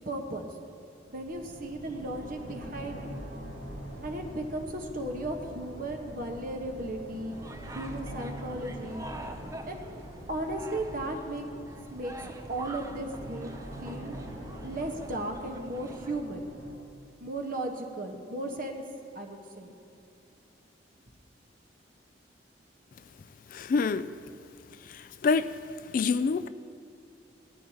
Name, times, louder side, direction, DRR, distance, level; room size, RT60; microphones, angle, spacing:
voice 1, 0.1-0.5 1.1-3.2 4.0-7.4 7.7-9.0 9.7-9.8 10.3-11.5 11.9-12.1 12.5-14.2 14.6-16.5 17.2-18.8 19.1-19.7, right 1 dB, 50° right, 1.2 m, -35 dB
sound 1, 1.0-16.7, equal, 85° right, 2.4 m, -43 dB
sound 2, 7.3-16.2, right 1 dB, 15° right, 0.6 m, -46 dB
voice 2, 23.5-24.1 24.9-25.6 25.9-26.5, left 4 dB, 45° left, 0.3 m, -27 dB
18.0 x 13.0 x 2.9 m
head